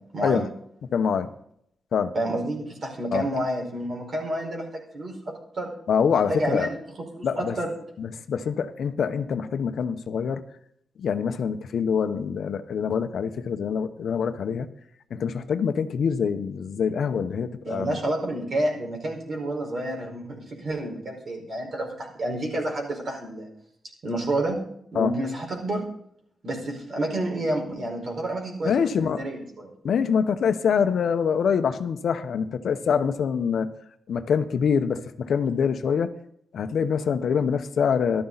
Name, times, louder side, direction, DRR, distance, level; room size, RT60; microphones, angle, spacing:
voice 1, 0.9-1.3 1.9-2.1 3.1-3.2 5.9-6.7 7.2-7.5 8.0-10.4 11.0-14.7 15.1-18.0 24.9-25.1 28.6-29.2 29.8-33.7 34.1-36.1 36.5-38.2, left 6 dB, 75° left, 9 dB, 1.0 m, -25 dB
voice 2, 2.1-4.7 4.9-5.1 5.5-5.7 6.1-6.8 7.1-7.7 17.6-23.5 24.0-24.6 24.9-25.8 26.4-29.7, right 1 dB, 50° right, 0 dB, 4.8 m, -29 dB
14.0 x 12.5 x 4.1 m, 0.71 s
wide cardioid pair, 120°, 0 cm